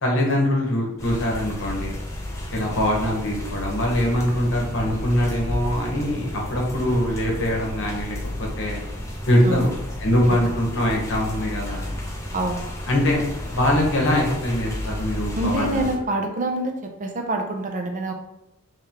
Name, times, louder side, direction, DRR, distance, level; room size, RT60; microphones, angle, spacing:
voice 1, 0.0-2.0 2.5-8.8 9.3-9.7 10.0-11.9 12.9-13.2 13.5-15.9, left 1 dB, 60° left, -1 dB, 1.0 m, -23 dB
sound 1, 1.0-16.0, left 1 dB, 15° left, 0.6 m, -32 dB
voice 2, 12.3-12.7 15.4-18.1, right 2 dB, 35° right, 4 dB, 0.5 m, -26 dB
3.5 x 3.2 x 2.9 m, 0.88 s
head